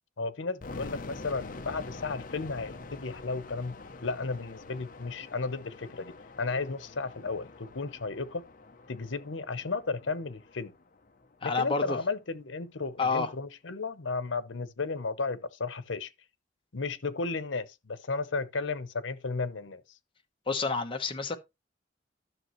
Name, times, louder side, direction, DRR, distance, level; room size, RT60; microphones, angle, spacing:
voice 1, 0.2-3.7 4.0-8.4 8.9-10.7 11.4-16.1 16.7-19.8, left 4 dB, 85° left, 0.9 m, -34 dB
sound 1, 0.6-11.5, left 3 dB, 45° left, 0.8 m, -46 dB
voice 2, 11.4-12.0 13.0-13.3 20.5-21.4, left 4 dB, 30° left, 1.2 m, -29 dB
12.0 x 6.8 x 3.1 m
head